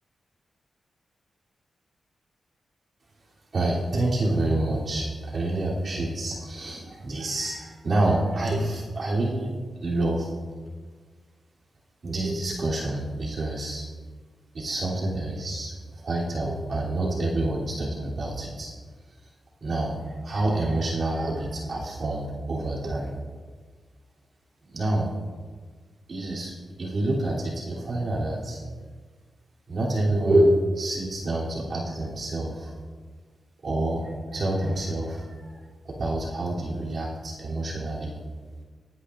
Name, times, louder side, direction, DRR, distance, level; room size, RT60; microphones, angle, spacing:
voice 1, 3.5-9.5 9.8-10.3 12.0-13.9 14.5-18.7 19.6-23.1 24.7-25.1 26.1-28.6 29.7-32.7 33.6-38.1, right 1 dB, 50° right, -6 dB, 3.0 m, -27 dB
22.0 x 9.9 x 2.5 m, 1.5 s
wide cardioid pair, 105°, 0 cm